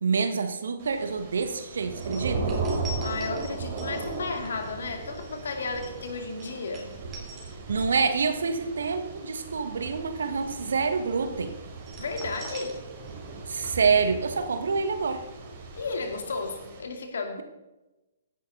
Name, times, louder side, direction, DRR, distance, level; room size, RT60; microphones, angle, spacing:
voice 1, 0.0-2.6 7.7-11.5 13.5-15.2, right 5 dB, 65° right, 8 dB, 1.5 m, -27 dB
Thunder / Rain, 0.8-16.8, right 3 dB, 40° right, 3.9 m, -37 dB
sound 1, 2.0-8.1 8.4-8.7 11.8-13.4 13.6-13.7, right 1 dB, 20° right, 3.6 m, -44 dB
voice 2, 3.0-7.0 12.0-12.8 15.7-17.4, left 4 dB, 65° left, 5 dB, 2.3 m, -33 dB
16.0 x 10.5 x 4.0 m, 1.0 s
figure-of-eight pair, 125°, 0 cm